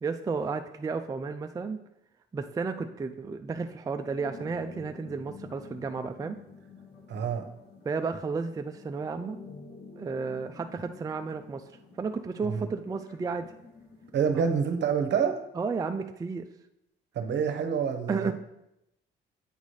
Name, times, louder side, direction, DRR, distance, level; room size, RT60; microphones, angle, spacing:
voice 1, 0.0-1.8 2.3-6.4 7.8-9.4 10.0-11.7 12.0-13.5 15.6-16.5 18.1-18.3, right 4 dB, 20° right, 6 dB, 0.3 m, -32 dB
sound 1, 3.9-14.2, left 4 dB, 55° left, 1.6 m, -50 dB
voice 2, 7.1-7.4 12.5-12.7 14.1-15.4 17.1-18.3, right 7 dB, 60° right, 6 dB, 0.8 m, -27 dB
8.3 x 3.9 x 3.2 m, 0.85 s
cardioid pair, 90°, 20 cm